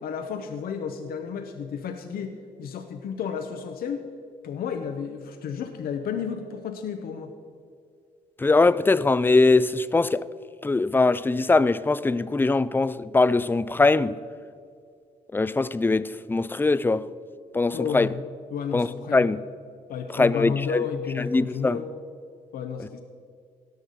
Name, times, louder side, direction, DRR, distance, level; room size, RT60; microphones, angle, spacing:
voice 1, 0.0-4.0 4.4-7.3 17.7-18.2 18.5-19.3 19.9-21.9 22.5-23.0, left 7 dB, 70° left, 0.9 m, -32 dB
voice 2, 8.4-10.3 10.6-14.1 15.3-17.0 17.5-18.1 18.7-19.4 20.1-20.8 21.2-21.8, left 3 dB, 15° left, 0.4 m, -21 dB
17.0 x 6.4 x 5.3 m
supercardioid pair, 65°, 16 cm